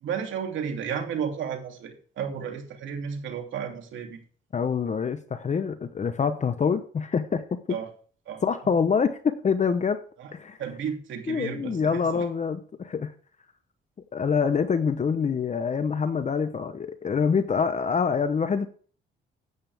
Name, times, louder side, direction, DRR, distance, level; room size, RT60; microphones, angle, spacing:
voice 1, 0.0-4.2 7.7-7.9 8.3-8.4 10.2-10.3 10.6-12.2, right 7 dB, 75° right, 3 dB, 2.8 m, -33 dB
voice 2, 4.5-7.6 8.4-10.0 10.3-10.6 11.3-13.1 14.1-18.7, left 6 dB, 35° left, 10 dB, 0.9 m, -25 dB
12.0 x 8.9 x 3.5 m, 0.42 s
cardioid pair, 90°, 20 cm